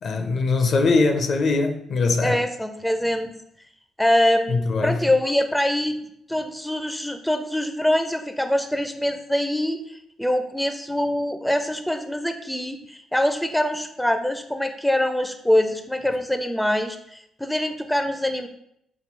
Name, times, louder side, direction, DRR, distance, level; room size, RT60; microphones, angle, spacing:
voice 1, 0.0-2.4 4.5-5.0, left 3 dB, 60° left, 0.5 m, -21 dB
voice 2, 2.2-3.3 4.0-6.0 6.3-18.5, left 1 dB, 5° left, 0.4 m, -24 dB
3.6 x 2.3 x 4.4 m
cardioid pair, 90°, 0 cm